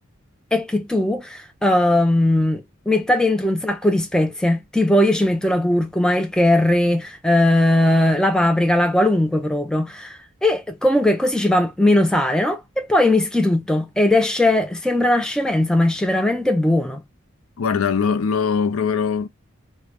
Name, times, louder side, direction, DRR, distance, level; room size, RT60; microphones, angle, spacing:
voice 1, 0.5-17.0, left 1 dB, 5° left, 0.3 m, -19 dB
voice 2, 17.6-19.3, left 6 dB, 85° left, 0.5 m, -21 dB
3.5 x 2.1 x 3.4 m
head